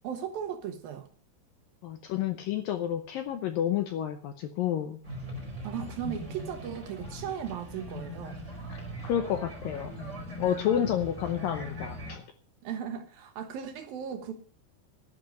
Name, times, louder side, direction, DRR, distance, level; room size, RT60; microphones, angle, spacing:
voice 1, 0.0-1.1 5.6-8.4 12.6-14.3, right 8 dB, 65° right, 2.8 m, -37 dB
voice 2, 1.8-5.0 8.7-8.8 9.0-9.9 10.4-12.2, left 10 dB, 75° left, 2.2 m, -30 dB
sound 1, 5.0-12.2, equal, 15° right, 4.9 m, -40 dB
12.0 x 10.5 x 6.6 m
omnidirectional pair, 5.0 m